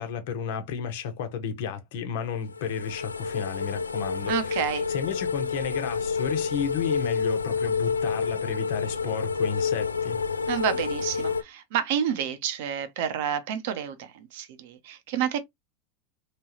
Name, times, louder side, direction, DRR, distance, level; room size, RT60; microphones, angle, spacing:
voice 1, 0.0-4.6 4.9-10.2, left 7 dB, 65° left, 1.1 m, -32 dB
sound 1, 2.4-11.4, left 5 dB, 90° left, 0.4 m, -29 dB
voice 2, 4.3-4.9 10.5-15.4, right 9 dB, 65° right, 0.9 m, -29 dB
3.5 x 3.2 x 2.9 m
hypercardioid pair, 85°, 0 cm